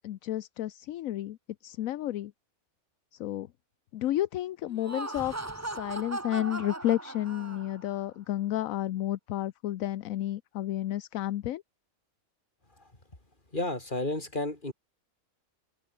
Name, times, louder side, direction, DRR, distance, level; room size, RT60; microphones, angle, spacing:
voice 1, 0.0-1.4 1.6-2.3 3.2-3.5 3.9-5.3 5.6-11.6, left 13 dB, 70° left, 1.0 m, -31 dB
Laughter, 4.7-7.9, right 2 dB, 10° right, 1.0 m, -38 dB
voice 2, 13.5-14.7, left 2 dB, 35° left, 4.5 m, -31 dB
open air
omnidirectional pair, 1.5 m